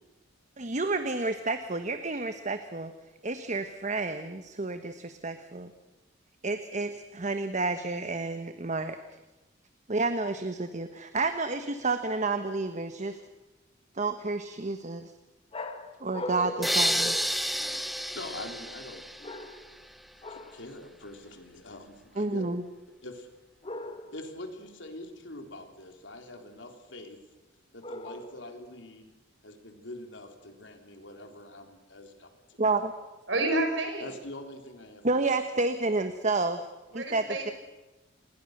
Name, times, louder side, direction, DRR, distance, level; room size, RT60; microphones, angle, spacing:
voice 1, 0.6-2.9 3.2-5.7 6.4-9.0 9.9-13.2 13.9-15.1 16.0-17.1 22.2-22.6 32.6-32.9 35.0-36.6 36.9-37.5, right 3 dB, 40° right, 9 dB, 1.2 m, -30 dB
sound 1, 15.5-18.0 19.2-19.8 20.2-20.7 23.6-24.3 27.8-28.6, left 1 dB, 30° left, 1.8 m, -40 dB
sound 2, 16.6-19.6, equal, ahead, 0.7 m, -30 dB
voice 2, 18.1-19.1 20.3-22.4 23.0-23.3 24.1-27.2 27.7-29.1 29.4-32.6 34.0-35.3, left 2 dB, 75° left, 5 dB, 3.7 m, -44 dB
voice 3, 33.3-34.1 36.9-37.5, right 2 dB, 70° right, 4 dB, 6.5 m, -29 dB
28.5 x 21.5 x 6.7 m, 1.1 s
head